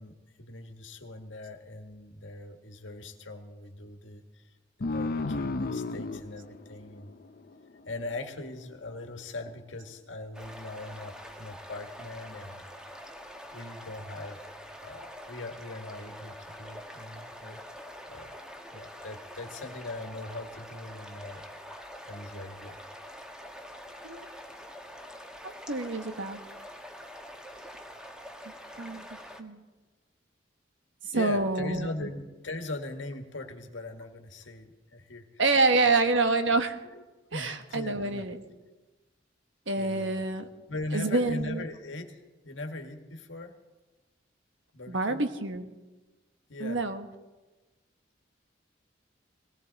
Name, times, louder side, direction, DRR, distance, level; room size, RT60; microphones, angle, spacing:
voice 1, 0.0-4.5 4.8-7.1 7.9-12.6 13.5-14.5 14.8-17.6 18.1-18.4 18.7-21.4 22.1-22.8 31.1-35.3 36.0-36.2 36.8-37.0 37.3-38.3 39.7-40.2 40.7-43.5 44.7-45.2 46.5-46.8, left 2 dB, 90° left, 5 dB, 1.7 m, -40 dB
sound 1, 4.8-8.0, left 2 dB, 50° left, 0.6 m, -33 dB
sound 2, 10.3-29.4, equal, 5° right, 1.1 m, -45 dB
voice 2, 25.4-26.4 28.8-29.1 29.4-29.6 31.0-32.1 35.4-36.8 37.3-38.4 39.7-40.5 40.9-41.7 44.9-45.7 46.6-47.1, right 3 dB, 85° right, 8 dB, 1.3 m, -27 dB
18.5 x 18.0 x 4.1 m, 1.2 s
head